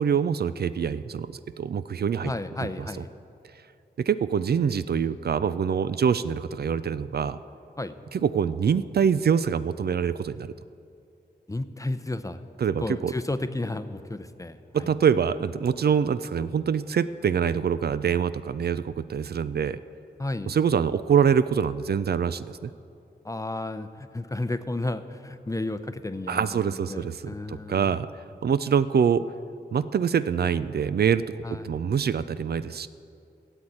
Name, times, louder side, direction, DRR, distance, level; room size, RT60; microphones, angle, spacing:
voice 1, 0.0-2.3 2.6-2.7 4.0-7.4 8.1-10.5 12.6-13.1 14.7-19.8 20.5-22.7 26.3-28.1 28.4-29.3 29.7-31.2 31.5-32.9, right 7 dB, 65° right, 14 dB, 0.4 m, -25 dB
voice 2, 2.2-3.1 7.8-8.0 11.5-12.5 12.8-14.9 20.2-20.5 23.2-27.9 31.4-31.7, left 2 dB, 20° left, 11 dB, 0.6 m, -32 dB
14.0 x 8.0 x 8.7 m, 2.6 s
wide cardioid pair, 80°, 18 cm